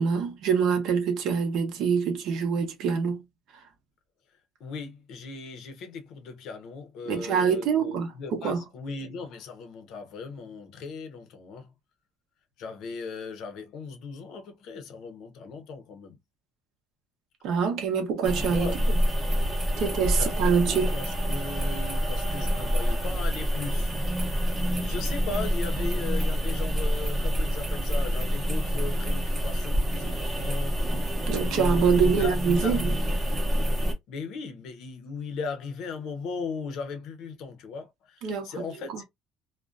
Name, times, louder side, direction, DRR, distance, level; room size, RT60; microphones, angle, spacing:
voice 1, 0.0-3.2 7.1-8.6 17.4-19.0 19.8-20.9 31.3-32.9 38.2-38.5 38.9-39.0, right 6 dB, 60° right, 0.7 m, -25 dB
voice 2, 4.6-11.7 12.6-16.2 18.4-18.8 19.7-19.8 20.1-24.0 24.3-30.8 31.4-32.8 34.1-39.0, left 4 dB, 60° left, 0.6 m, -38 dB
sound 1, 18.2-33.9, equal, 10° right, 0.7 m, -27 dB
2.4 x 2.1 x 2.4 m
cardioid pair, 160°, 0 cm